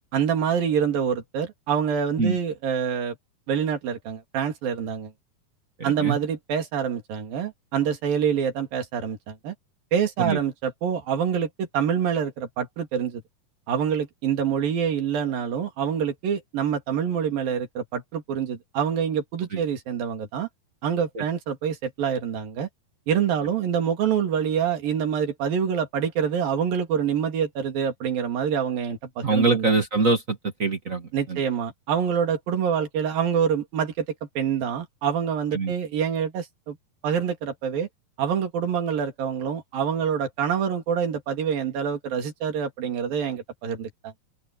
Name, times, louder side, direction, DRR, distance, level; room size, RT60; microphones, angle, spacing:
voice 1, 0.0-3.2 3.5-5.1 5.8-9.5 9.9-13.2 13.7-20.5 20.8-22.7 23.1-29.7 31.1-34.1 34.4-36.8 37.0-37.9 38.2-44.1, right 8 dB, 65° right, 4.6 m, -26 dB
voice 2, 5.8-6.2 10.2-10.4 21.1-21.2 29.2-31.4 35.5-35.7, right 3 dB, 45° right, 1.0 m, -24 dB
open air
omnidirectional pair, 4.4 m